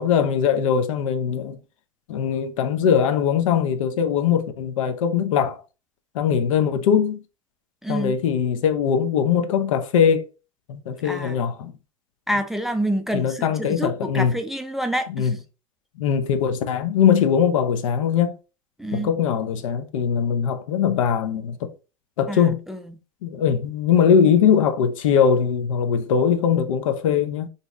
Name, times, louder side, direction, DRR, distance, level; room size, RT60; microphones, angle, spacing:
voice 1, 0.0-1.6 2.1-5.6 6.1-7.2 7.9-10.3 10.7-11.7 13.1-14.3 15.1-15.3 16.0-18.3 18.9-21.6 22.2-22.6 23.2-27.5, left 7 dB, 75° left, 0.6 m, -21 dB
voice 2, 7.8-8.2 11.0-11.4 12.3-15.4 18.8-19.1 22.3-23.0, right 1 dB, ahead, 0.4 m, -28 dB
2.6 x 2.1 x 3.5 m
hypercardioid pair, 90°, 17 cm